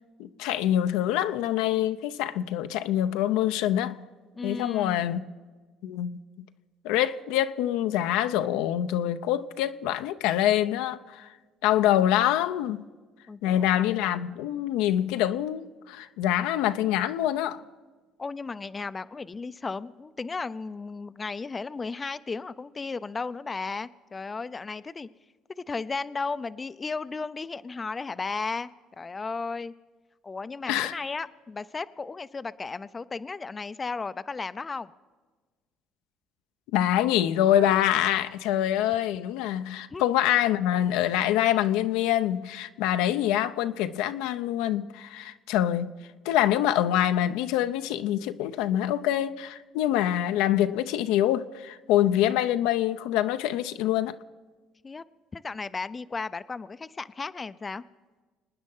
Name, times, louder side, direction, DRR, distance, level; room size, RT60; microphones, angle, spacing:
voice 1, 0.2-4.0 4.4-5.2 5.8-6.2 6.8-11.3 11.6-12.9 13.4-17.6 30.7-30.9 36.7-45.9 46.2-54.2, left 12 dB, 80° left, 0.6 m, -25 dB
voice 2, 4.3-5.1 13.3-13.8 18.2-25.1 25.7-28.7 29.0-29.7 30.2-34.9 39.9-40.0 54.8-55.0 55.3-57.8, left 4 dB, 25° left, 0.5 m, -34 dB
26.0 x 9.6 x 5.5 m
supercardioid pair, 85°, 0 cm